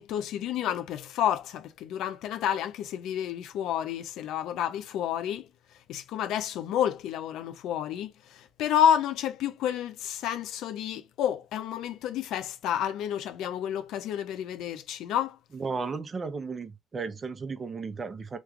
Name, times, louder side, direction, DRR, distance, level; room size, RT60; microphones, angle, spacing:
voice 1, 0.0-5.5 5.9-15.4, left 10 dB, 90° left, 0.4 m, -30 dB
voice 2, 15.5-18.4, right 4 dB, 35° right, 0.6 m, -34 dB
3.1 x 2.2 x 3.4 m
cardioid pair, 90°, 0 cm